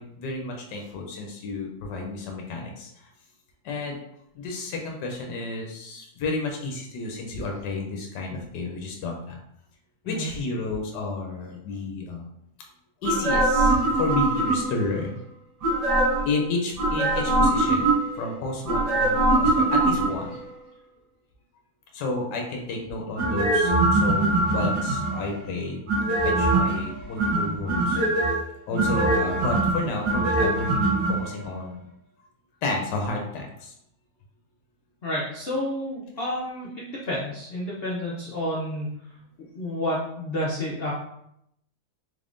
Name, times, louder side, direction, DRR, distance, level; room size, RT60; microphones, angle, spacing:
voice 1, 0.0-3.1 3.6-4.0 4.3-9.4 10.0-12.3 13.0-15.1 16.3-20.4 21.9-25.8 26.2-28.0 28.7-31.8 32.6-33.7, left 3 dB, 85° left, 1 dB, 1.3 m, -31 dB
sound 1, 13.0-14.9 15.6-16.3 16.8-18.2 18.7-20.4 23.2-25.3 25.9-26.8 27.2-28.3 28.8-31.1 31.4-31.5, right 2 dB, 80° right, 1.6 m, -22 dB
voice 2, 28.7-29.1 35.0-38.9 39.5-40.9, left 1 dB, 50° left, -5 dB, 0.7 m, -30 dB
4.0 x 3.5 x 2.5 m, 0.76 s
omnidirectional pair, 1.8 m